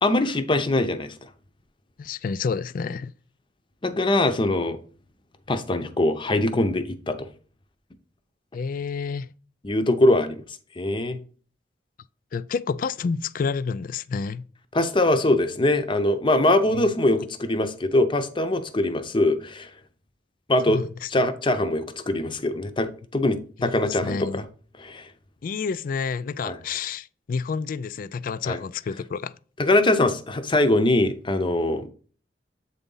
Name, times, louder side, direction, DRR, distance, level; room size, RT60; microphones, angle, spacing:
voice 1, 0.0-1.1 3.8-4.8 5.5-7.3 9.6-10.4 10.8-11.2 14.7-19.7 20.5-20.8 21.1-24.4 24.8-25.1 26.4-26.6 28.4-28.6 29.6-31.9, left 1 dB, 30° left, 0.7 m, -22 dB
voice 2, 2.0-3.1 8.5-9.3 12.3-14.4 16.7-16.9 20.7-21.1 23.6-24.4 25.4-29.3, left 5 dB, 50° left, 0.3 m, -29 dB
8.0 x 4.0 x 3.8 m
head